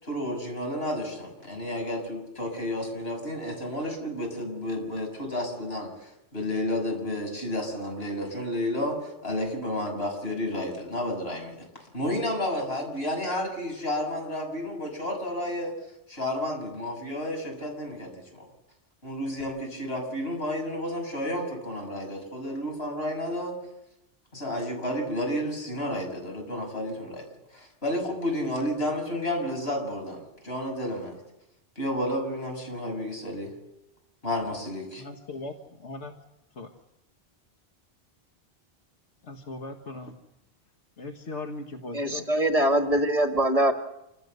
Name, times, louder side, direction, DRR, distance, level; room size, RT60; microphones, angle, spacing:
voice 1, 0.0-11.6 11.9-15.7 16.1-18.4 19.0-23.6 24.3-27.2 27.5-31.2 31.8-33.5 34.2-35.0, left 1 dB, 65° left, 2 dB, 7.1 m, -31 dB
voice 2, 35.0-35.5 35.8-36.1 36.6-36.7 39.2-40.1 41.0-42.3, left 2 dB, 90° left, 4 dB, 1.9 m, -38 dB
voice 3, 41.9-43.7, right 1 dB, 35° right, 5 dB, 1.9 m, -23 dB
27.5 x 16.5 x 8.2 m, 0.90 s
omnidirectional pair, 1.1 m